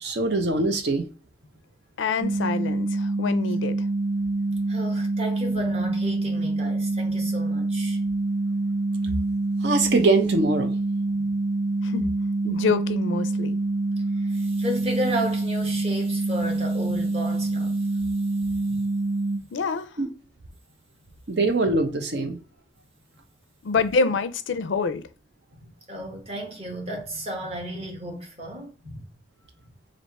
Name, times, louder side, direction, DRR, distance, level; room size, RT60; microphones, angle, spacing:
voice 1, 0.0-1.0 9.6-10.7 20.0-20.1 21.3-22.4, right 3 dB, 65° right, 0.7 m, -22 dB
voice 2, 2.0-3.9 11.8-12.1 12.4-13.6 19.5-19.9 23.6-25.1, left 4 dB, 85° left, 0.5 m, -26 dB
sound 1, 2.2-19.4, right 2 dB, 15° right, 0.4 m, -26 dB
voice 3, 4.7-8.0 11.1-11.3 14.1-18.3 18.6-18.8 25.6-29.1, equal, 35° right, 1.2 m, -33 dB
3.4 x 2.5 x 4.1 m
head